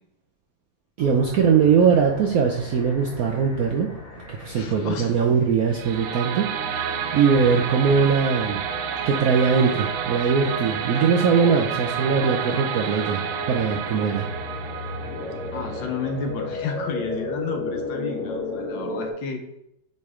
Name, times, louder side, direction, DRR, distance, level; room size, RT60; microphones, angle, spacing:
sound 1, 1.0-19.1, left 2 dB, 50° left, 1.1 m, -36 dB
voice 1, 1.0-3.9 4.3-6.5 7.1-8.6 9.1-13.2 13.5-14.2, right 6 dB, 75° right, 1 dB, 0.8 m, -21 dB
voice 2, 4.5-5.1 15.5-19.4, left 5 dB, 75° left, 4 dB, 1.5 m, -31 dB
sound 2, 5.7-16.7, right 7 dB, 90° right, 1.4 m, -30 dB
8.3 x 3.3 x 3.6 m, 0.78 s
omnidirectional pair, 2.1 m